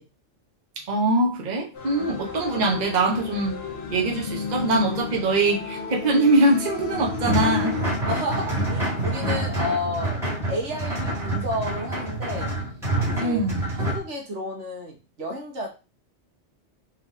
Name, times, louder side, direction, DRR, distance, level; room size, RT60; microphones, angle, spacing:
voice 1, 0.9-3.5 3.9-7.8 13.2-13.6, right 2 dB, 40° right, 0 dB, 0.9 m, -22 dB
sound 1, 1.7-8.0, left 5 dB, 60° left, 1.1 m, -33 dB
sound 2, 6.9-14.0, right 1 dB, ahead, 1.9 m, -27 dB
voice 2, 8.0-12.5 13.0-13.4 13.7-15.7, left 1 dB, 75° right, 0 dB, 1.6 m, -31 dB
4.0 x 3.5 x 2.7 m, 0.29 s
omnidirectional pair, 1.2 m